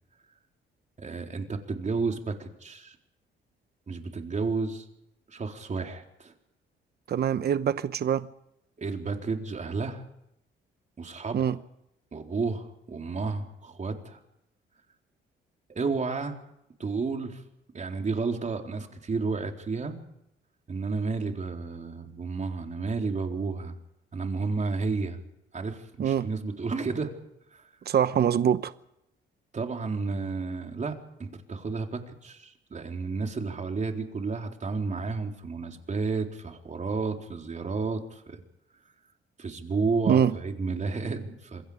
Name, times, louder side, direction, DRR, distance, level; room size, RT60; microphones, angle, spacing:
voice 1, 1.0-3.0 3.9-4.8 5.3-6.3 8.8-10.0 11.0-11.6 12.1-14.2 15.7-16.4 16.8-17.4 17.7-20.0 20.7-23.7 24.1-25.2 25.5-27.1 27.5-27.7 29.5-30.9 31.2-38.4 39.4-41.6, right 4 dB, 35° right, 4.1 m, -31 dB
voice 2, 7.1-8.3 11.3-11.6 26.0-26.3 27.9-28.7 40.1-40.3, right 9 dB, 55° right, 1.0 m, -24 dB
27.5 x 22.5 x 5.1 m
cardioid pair, 90°, 20 cm